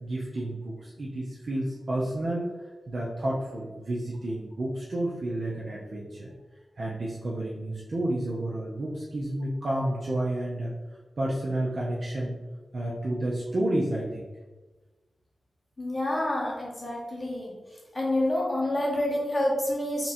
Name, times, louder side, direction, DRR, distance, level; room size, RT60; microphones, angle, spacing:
voice 1, 0.0-2.5 2.9-6.3 6.8-10.7 11.2-12.4 12.7-14.3, right 1 dB, 55° right, -5 dB, 0.7 m, -30 dB
voice 2, 15.8-17.5 17.9-20.1, left 1 dB, 20° left, -3 dB, 1.3 m, -28 dB
3.6 x 2.8 x 4.3 m, 1.2 s
cardioid pair, 70°, 0 cm